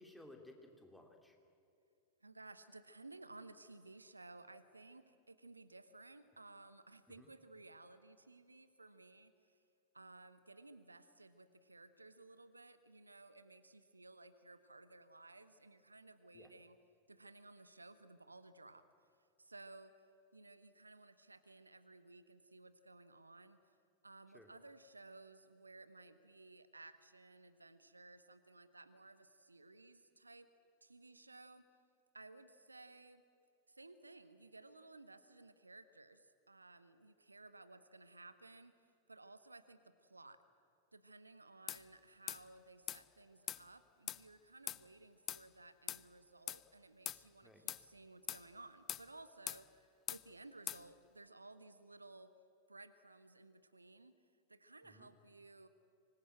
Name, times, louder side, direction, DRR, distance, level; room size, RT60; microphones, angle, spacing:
voice 1, 0.0-1.4 7.2-7.3 16.3-16.5 24.3-24.5 47.4-47.6 54.8-55.1, left 1 dB, 5° left, 2 dB, 2.9 m, -58 dB
voice 2, 2.2-9.6 9.9-16.8 17.1-18.8 19.4-19.9 20.3-23.6 24.0-30.5 30.8-31.6 32.1-33.2 33.7-40.4 40.9-52.3 52.7-54.1 54.5-55.7, right 2 dB, 80° right, 13 dB, 0.9 m, -58 dB
sound 1, 41.7-41.8 42.3-42.4 42.9-43.0 43.5-43.6 44.1-44.2 44.7-44.8 45.3-45.4 45.9-46.0 46.5-46.6 47.0-47.2 47.7-47.8 48.3-48.4 48.9-49.1 49.5-49.6 50.1-50.2 50.7-50.8, left 12 dB, 30° left, 0.5 m, -42 dB
25.0 x 19.5 x 7.9 m, 2.5 s
figure-of-eight pair, 90°, 0 cm